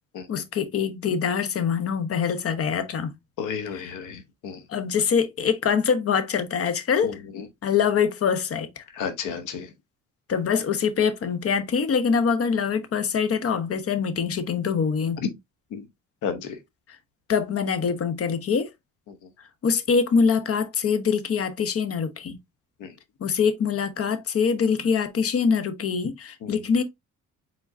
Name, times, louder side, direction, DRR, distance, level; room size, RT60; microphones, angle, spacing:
voice 1, 0.3-3.1 3.7-3.9 4.7-7.2 7.6-8.8 10.3-15.2 17.3-18.7 19.6-22.4 23.2-26.8, left 6 dB, 50° left, 0.9 m, -24 dB
voice 2, 3.4-4.6 7.0-7.5 8.9-9.7 15.2-15.3 15.7-15.8 16.2-16.6 22.8-22.9 26.4-26.5, left 6 dB, 85° left, 1.0 m, -32 dB
4.8 x 3.7 x 2.6 m
cardioid pair, 90°, 30 cm